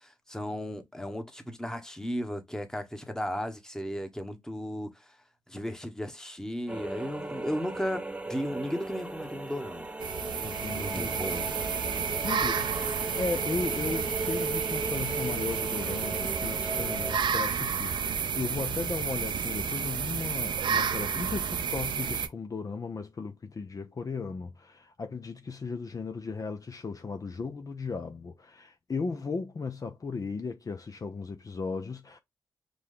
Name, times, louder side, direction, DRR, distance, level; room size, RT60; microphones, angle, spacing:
voice 1, 0.0-5.1 5.5-8.0 8.3-9.9 10.7-11.5, equal, 5° left, 1.1 m, -35 dB
sound 1, 6.7-17.2, right 2 dB, 15° right, 0.6 m, -37 dB
sound 2, 10.0-22.3, right 7 dB, 65° right, 0.5 m, -31 dB
voice 2, 10.4-11.2 12.2-32.2, left 4 dB, 45° left, 0.6 m, -36 dB
4.9 x 2.3 x 3.7 m
supercardioid pair, 50°, 9 cm